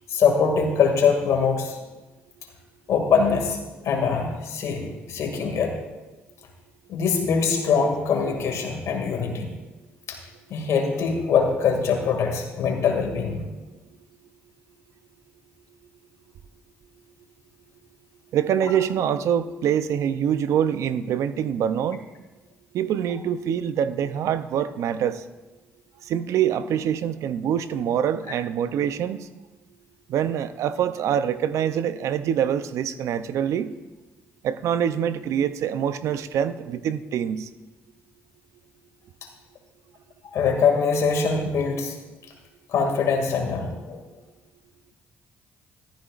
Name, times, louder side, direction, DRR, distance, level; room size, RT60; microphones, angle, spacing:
voice 1, 0.1-1.8 2.9-3.6 3.8-5.8 6.9-9.5 10.1-10.2 10.5-13.4 40.2-41.9 42.7-44.0, left 5 dB, 70° left, 2 dB, 2.2 m, -23 dB
voice 2, 18.3-22.1 22.7-25.2 26.0-29.3 30.1-33.7 34.4-37.5, right 9 dB, 75° right, 13 dB, 0.6 m, -25 dB
14.0 x 13.5 x 2.5 m, 1.1 s
supercardioid pair, 60°, 5 cm